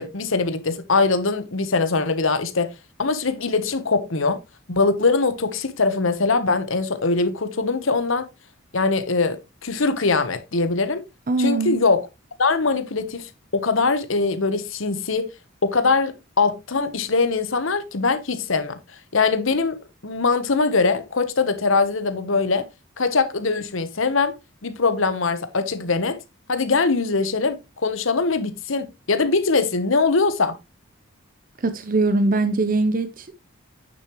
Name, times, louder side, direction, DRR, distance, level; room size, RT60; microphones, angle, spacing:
voice 1, 0.0-2.7 3.0-4.4 4.7-8.3 8.7-11.0 11.4-12.1 12.4-15.3 15.6-18.8 19.1-19.8 20.0-22.7 23.0-24.3 24.6-26.2 26.5-30.5, left 4 dB, 65° left, 1.0 m, -22 dB
voice 2, 11.3-11.8 31.6-33.4, right 2 dB, 40° right, 0.6 m, -22 dB
9.2 x 7.0 x 3.0 m
head